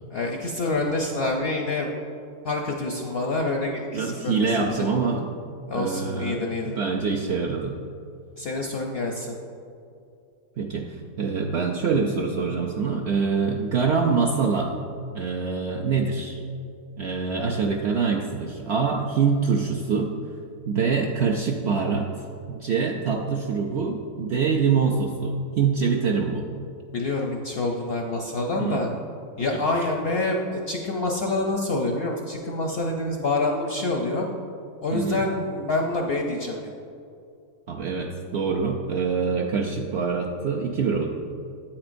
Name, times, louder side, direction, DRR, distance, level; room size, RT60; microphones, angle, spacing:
voice 1, 0.1-1.9 2.4-4.8 5.7-6.8 8.4-9.3 26.9-28.9 29.4-34.2 34.8-36.7, left 2 dB, 65° left, 1 dB, 0.6 m, -27 dB
voice 2, 3.9-5.3 5.7-7.8 10.6-14.7 15.1-16.4 17.0-20.1 20.7-22.1 22.5-26.5 28.6-29.0 29.5-29.6 34.9-35.3 37.7-41.1, right 5 dB, 70° right, 0 dB, 0.6 m, -25 dB
8.7 x 8.5 x 2.5 m, 2.5 s
omnidirectional pair, 1.6 m